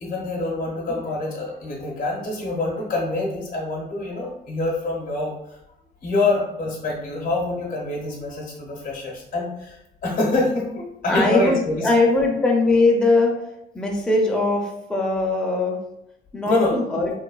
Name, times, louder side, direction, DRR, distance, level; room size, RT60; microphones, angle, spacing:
voice 1, 0.0-5.3 6.0-11.8 16.4-16.7, left 2 dB, 45° left, -2 dB, 0.7 m, -25 dB
voice 2, 11.1-13.4 13.7-15.8 16.3-17.1, left 2 dB, 5° left, -1 dB, 0.5 m, -20 dB
3.1 x 2.1 x 2.3 m, 0.84 s
cardioid pair, 90°, 20 cm